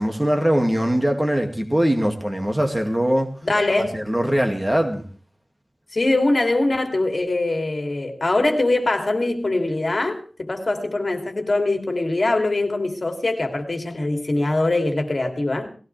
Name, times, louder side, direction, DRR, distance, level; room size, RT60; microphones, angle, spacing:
voice 1, 0.0-3.3 3.9-5.0, equal, 15° right, 2.3 m, -21 dB
voice 2, 3.4-4.0 5.9-15.7, left 2 dB, 60° left, 3.0 m, -22 dB
19.0 x 17.0 x 3.4 m
wide cardioid pair, 75°, 0 cm